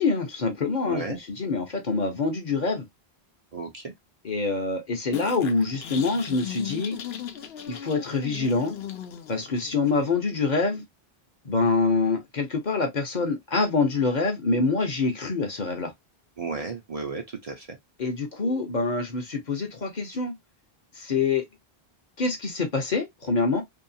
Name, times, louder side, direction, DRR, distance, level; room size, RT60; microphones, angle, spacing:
voice 1, 0.0-2.8 4.2-6.9 7.7-8.8 9.3-10.8 11.4-15.9 18.0-20.3 20.9-21.4 22.2-23.6, left 4 dB, 50° left, 0.8 m, -25 dB
voice 2, 0.8-1.2 3.5-3.9 16.4-17.8, right 4 dB, 45° right, 0.6 m, -34 dB
sound 1, 5.1-10.1, left 9 dB, 80° left, 0.8 m, -38 dB
2.7 x 2.3 x 2.6 m
omnidirectional pair, 1.0 m